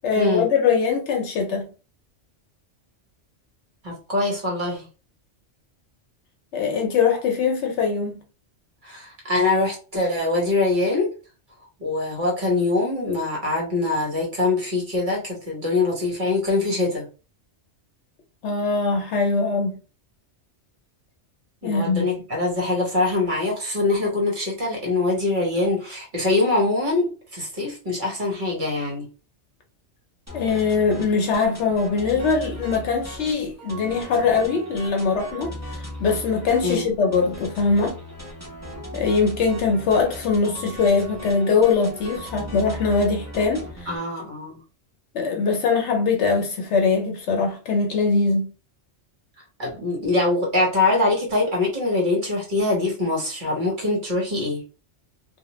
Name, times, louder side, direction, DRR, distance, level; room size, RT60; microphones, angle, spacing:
voice 1, 0.0-1.7 6.5-8.2 18.4-19.8 21.6-22.1 30.3-37.9 38.9-44.0 45.1-48.5, left 4 dB, 75° left, 0.9 m, -22 dB
voice 2, 3.8-4.9 8.8-11.1 11.8-17.1 21.6-29.1 36.6-36.9 43.9-44.6 49.6-54.6, left 2 dB, 45° right, 1.1 m, -23 dB
sound 1, 30.3-44.0, left 1 dB, 15° right, 0.8 m, -37 dB
2.4 x 2.3 x 2.9 m
omnidirectional pair, 1.2 m